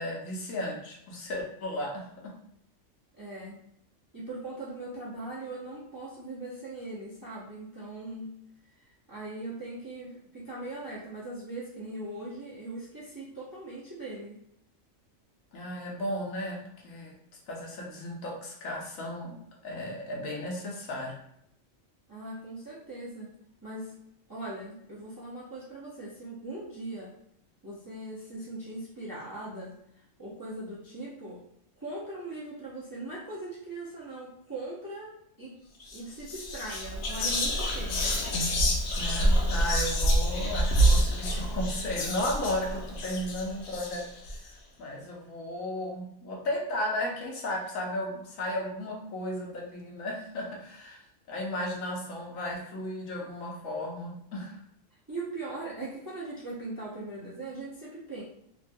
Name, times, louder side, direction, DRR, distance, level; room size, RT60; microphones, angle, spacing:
voice 1, 0.0-2.3 15.5-17.1 17.5-19.4 19.6-21.2 39.0-44.5 44.8-51.0 51.3-54.6, left 1 dB, 80° left, -1 dB, 1.2 m, -34 dB
voice 2, 3.2-3.6 4.1-8.4 9.1-14.4 22.1-23.3 23.6-24.0 24.3-27.1 27.6-29.8 30.2-31.4 31.8-35.6 35.9-38.1 55.1-58.2, right 2 dB, 25° right, -7 dB, 0.4 m, -40 dB
Whispering, 35.8-36.0 36.3-44.4, equal, 60° left, 0.8 m, -27 dB
3.0 x 2.2 x 2.6 m, 0.72 s
omnidirectional pair, 1.4 m